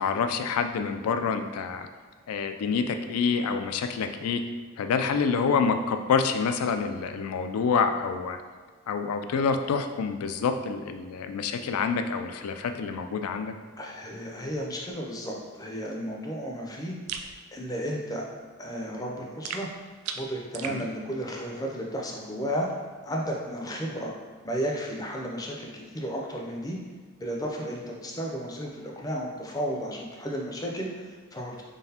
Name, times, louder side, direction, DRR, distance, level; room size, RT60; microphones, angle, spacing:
voice 1, 0.0-1.9 2.3-4.4 4.8-8.4 8.9-13.5 20.7-20.8, left 5 dB, 85° left, 7 dB, 0.3 m, -27 dB
voice 2, 13.8-18.3 18.6-19.7 20.2-22.7 23.0-24.1 24.4-26.8 27.2-31.6, equal, 15° left, 0 dB, 0.4 m, -33 dB
sound 1, 17.1-17.3 19.4-20.8, right 6 dB, 85° right, 0.3 m, -36 dB
3.8 x 3.5 x 2.8 m, 1.5 s
head